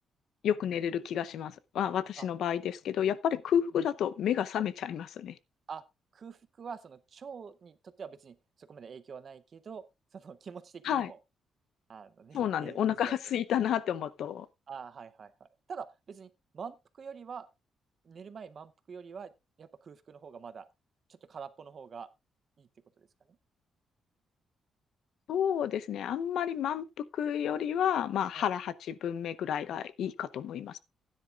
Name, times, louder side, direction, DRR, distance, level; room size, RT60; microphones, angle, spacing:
voice 1, 0.4-5.4 10.8-11.1 12.3-14.5 25.3-30.8, left 9 dB, 65° left, 0.6 m, -31 dB
voice 2, 6.1-9.9 10.1-11.2 11.9-13.2 14.7-17.5 18.0-19.3 19.6-20.7 21.1-22.1 22.6-22.7 23.0-23.4 28.3-28.5, right 6 dB, 35° right, 0.6 m, -46 dB
15.5 x 9.9 x 2.4 m
cardioid pair, 170°, 0 cm